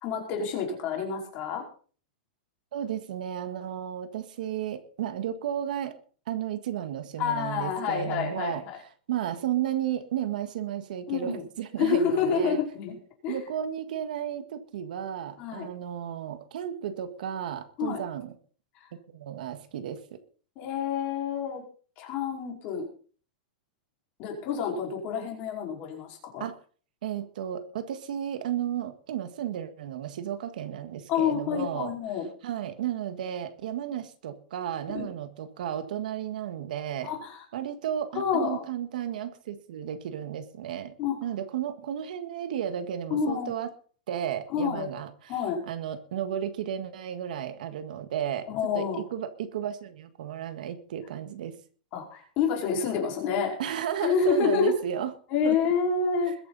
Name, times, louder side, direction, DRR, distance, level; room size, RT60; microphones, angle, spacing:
voice 1, 0.0-1.6 7.2-8.8 11.1-11.4 11.8-13.0 13.2-13.4 15.4-15.7 17.8-18.0 20.5-21.6 22.0-22.8 24.2-26.4 31.1-32.3 34.9-35.1 37.0-37.4 38.1-38.6 41.0-41.2 43.1-43.5 44.5-44.9 45.3-45.6 48.5-49.0 51.9-53.5 54.0-54.7 55.3-56.3, left 6 dB, 30° left, 0 dB, 4.9 m, -28 dB
voice 2, 2.7-6.0 6.3-8.6 9.1-12.6 13.3-18.3 19.1-20.2 26.4-26.5 27.0-31.9 32.4-37.1 37.5-40.9 41.2-43.7 44.1-48.5 48.7-51.6 53.6-55.1 55.4-55.6 56.2-56.3, right 10 dB, 65° right, 9 dB, 1.7 m, -33 dB
21.5 x 9.5 x 4.2 m, 0.42 s
supercardioid pair, 175°, 5 cm